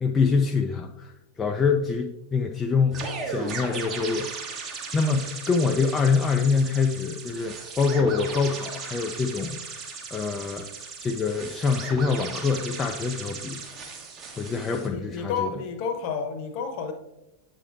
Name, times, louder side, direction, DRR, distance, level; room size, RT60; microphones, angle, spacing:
voice 1, 0.0-13.6 14.4-15.5, left 5 dB, 20° left, 3 dB, 0.4 m, -25 dB
sound 1, 2.9-14.9, right 4 dB, 30° right, 1.3 m, -37 dB
voice 2, 14.7-16.9, left 6 dB, 45° left, 6 dB, 1.0 m, -31 dB
8.2 x 6.5 x 2.5 m, 0.92 s
figure-of-eight pair, 90°, 0 cm